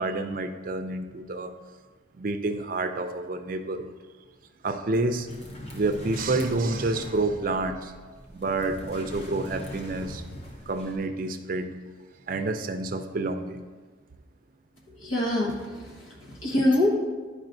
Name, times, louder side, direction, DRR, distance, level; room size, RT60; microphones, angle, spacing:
voice 1, 0.0-1.5 2.1-3.9 4.6-5.3 5.7-7.9 8.3-10.2 10.7-11.7 12.3-13.6, right 2 dB, 45° right, 7 dB, 0.4 m, -28 dB
sound 1, 5.3-11.0, equal, 30° left, 0.7 m, -41 dB
voice 2, 15.0-16.9, left 1 dB, 90° left, -3 dB, 1.2 m, -25 dB
10.5 x 4.9 x 2.6 m, 1.4 s
head